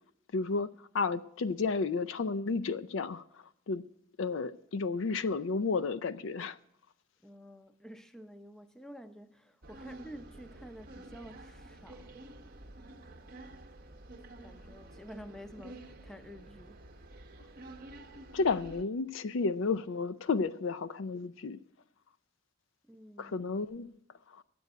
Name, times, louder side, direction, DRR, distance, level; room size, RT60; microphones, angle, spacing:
voice 1, 0.3-3.8 4.2-6.6 18.3-21.6 23.2-23.9 24.3-24.4, left 4 dB, 65° left, 0.4 m, -32 dB
voice 2, 7.2-12.2 14.4-16.9 22.9-23.4, equal, 5° left, 0.6 m, -50 dB
sound 1, 9.6-18.8, right 1 dB, 45° right, 0.8 m, -50 dB
11.0 x 7.7 x 9.2 m
head